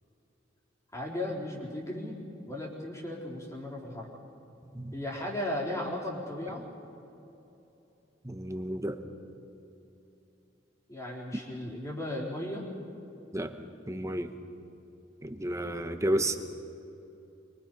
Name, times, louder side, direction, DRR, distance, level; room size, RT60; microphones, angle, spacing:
voice 1, 0.9-2.2 2.5-4.1 4.9-6.6 10.9-12.6, left 1 dB, 15° left, -3 dB, 4.0 m, -36 dB
voice 2, 8.2-9.0 13.3-13.5 13.9-14.3 15.2-16.4, right 1 dB, 15° right, 7 dB, 1.1 m, -31 dB
24.5 x 24.0 x 5.5 m, 3.0 s
head